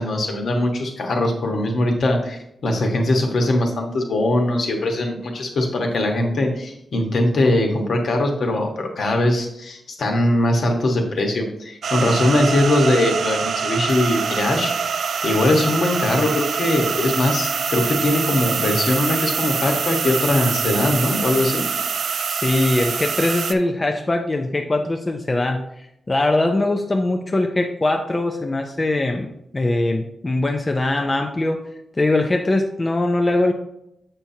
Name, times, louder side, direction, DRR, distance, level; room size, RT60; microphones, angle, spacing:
voice 1, 0.0-14.7 15.2-21.6, left 1 dB, 60° left, 2 dB, 1.2 m, -21 dB
sound 1, 11.8-23.5, right 6 dB, 65° right, 0.3 m, -25 dB
voice 2, 22.3-31.6 31.9-33.5, left 2 dB, 20° left, 3 dB, 0.5 m, -21 dB
7.7 x 5.8 x 2.7 m, 0.79 s
wide cardioid pair, 165°, 0 cm